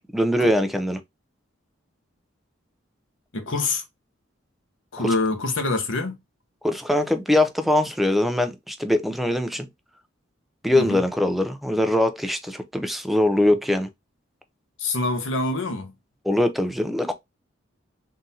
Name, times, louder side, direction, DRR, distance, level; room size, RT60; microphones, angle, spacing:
voice 1, 0.1-1.0 5.0-5.1 6.6-9.7 10.6-13.9 16.2-17.1, left 1 dB, ahead, 0.5 m, -22 dB
voice 2, 3.3-3.8 4.9-6.2 10.7-11.0 14.8-15.9, left 3 dB, 70° left, 1.0 m, -25 dB
3.8 x 2.6 x 4.1 m
head